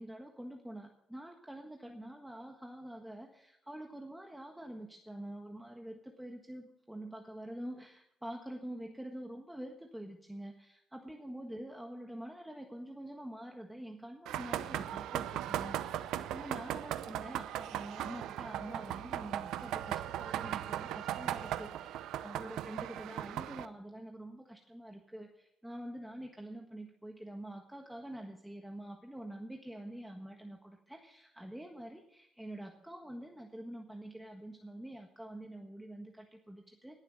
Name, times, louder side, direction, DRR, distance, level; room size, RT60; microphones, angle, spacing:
voice 1, 0.0-37.0, right 1 dB, 5° right, 2 dB, 1.5 m, -46 dB
sound 1, 14.3-23.7, right 12 dB, 90° right, 0.6 m, -38 dB
19.0 x 7.4 x 6.4 m, 0.77 s
cardioid pair, 90°, 0 cm